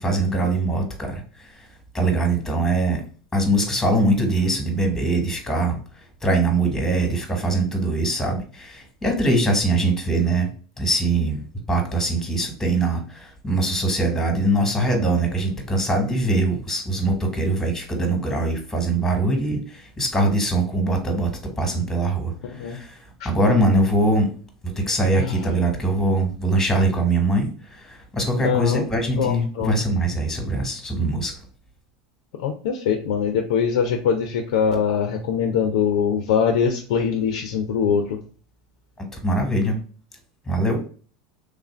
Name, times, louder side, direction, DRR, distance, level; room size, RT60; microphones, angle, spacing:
voice 1, 0.0-1.7 1.9-3.0 3.3-5.8 6.2-10.5 10.8-11.4 11.7-21.3 21.6-23.0 23.2-24.3 24.6-31.3 39.0-39.8 40.5-40.8, right 2 dB, 10° left, 3 dB, 1.2 m, -22 dB
voice 2, 22.4-22.8 23.2-23.3 25.1-25.4 28.4-28.9 29.2-29.7 32.4-38.2, left 7 dB, 75° left, 5 dB, 0.5 m, -23 dB
3.3 x 2.5 x 3.2 m, 0.41 s
hypercardioid pair, 100°, 3 cm